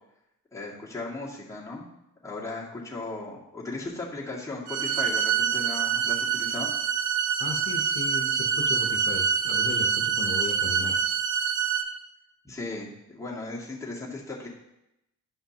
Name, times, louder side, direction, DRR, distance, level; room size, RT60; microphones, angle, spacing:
voice 1, 0.5-1.9 2.2-6.7 12.4-14.5, left 2 dB, 10° left, -6 dB, 2.1 m, -36 dB
sound 1, 4.7-11.8, right 7 dB, 85° right, 0.7 m, -26 dB
voice 2, 7.4-11.1, left 4 dB, 50° left, 0 dB, 1.1 m, -35 dB
11.0 x 5.6 x 3.0 m, 0.88 s
cardioid pair, 90°, 30 cm